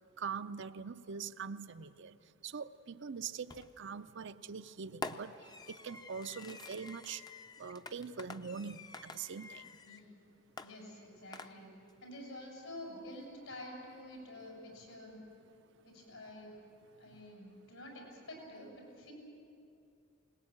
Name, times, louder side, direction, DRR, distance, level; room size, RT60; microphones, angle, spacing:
voice 1, 0.2-2.1 2.4-5.3 5.7-7.2 7.6-9.7, right 6 dB, 60° right, 12 dB, 0.6 m, -43 dB
Fireworks, 3.5-3.9 5.0-10.1 10.6-11.9, left 3 dB, 20° left, 0.6 m, -48 dB
voice 2, 10.6-11.7 12.0-15.2 15.8-16.5 17.0-19.1, left 1 dB, 80° left, -1 dB, 7.4 m, -49 dB
22.0 x 19.5 x 8.8 m, 2.6 s
head